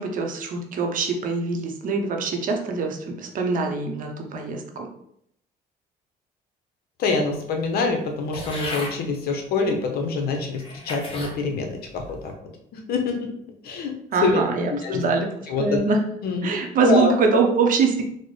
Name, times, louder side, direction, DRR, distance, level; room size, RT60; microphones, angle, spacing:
voice 1, 0.0-4.9 14.1-15.3 15.6-16.0 16.4-18.0, right 4 dB, 55° right, 2 dB, 0.7 m, -23 dB
voice 2, 7.0-11.7 11.9-12.3 12.9-13.2 13.6-13.9 14.2-14.4 14.7-15.0 15.5-15.7 16.2-16.5 16.8-17.1, left 4 dB, 65° left, 3 dB, 0.7 m, -25 dB
sound 1, 8.3-9.0 9.8-9.9 10.5-11.4 11.9-12.3, left 2 dB, 35° left, 0.9 m, -34 dB
4.2 x 2.1 x 3.1 m, 0.73 s
cardioid pair, 110°, 17 cm